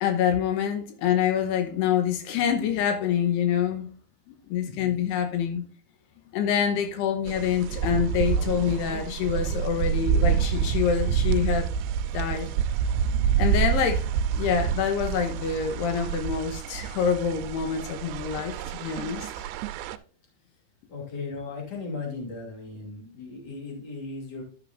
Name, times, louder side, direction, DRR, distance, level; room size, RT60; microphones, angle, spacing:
voice 1, 0.0-3.9 4.3-5.6 6.3-11.7 12.1-12.5 13.4-14.1 14.3-19.3, left 8 dB, 80° left, 3.0 m, -26 dB
voice 2, 4.6-5.1 20.9-24.4, left 4 dB, 30° left, 2.7 m, -37 dB
sound 1, 7.3-20.0, right 8 dB, 90° right, 2.7 m, -27 dB
11.5 x 6.6 x 2.5 m
omnidirectional pair, 4.7 m